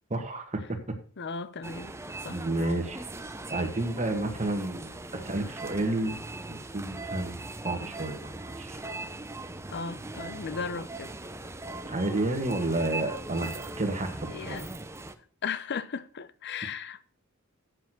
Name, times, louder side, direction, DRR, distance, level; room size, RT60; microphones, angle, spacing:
voice 1, 0.1-0.8 2.3-3.0 3.5-6.2 6.5-8.8 11.8-14.6, right 2 dB, 35° right, 1.7 m, -31 dB
voice 2, 1.2-2.0 2.2-2.8 9.7-11.2 14.3-14.6 15.4-17.0, left 5 dB, 55° left, 0.7 m, -36 dB
sound 1, 1.6-15.1, right 2 dB, 15° right, 0.7 m, -40 dB
8.0 x 7.4 x 6.0 m
head